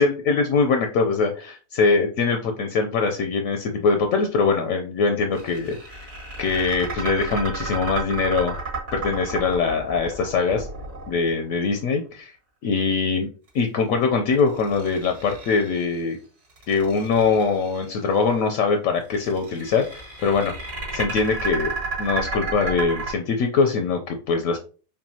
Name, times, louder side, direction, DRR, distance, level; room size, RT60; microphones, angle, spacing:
voice 1, 0.0-6.1 6.4-8.6 8.9-10.7 11.1-12.3 12.6-13.3 13.5-16.2 16.7-20.5 20.9-24.6, left 4 dB, 70° left, 5 dB, 0.9 m, -22 dB
sound 1, 5.4-11.6 14.4-16.0 16.5-17.8 19.1-23.1, right 3 dB, 85° right, 2.7 m, -32 dB
5.3 x 2.5 x 2.7 m, 0.37 s
omnidirectional pair, 1.6 m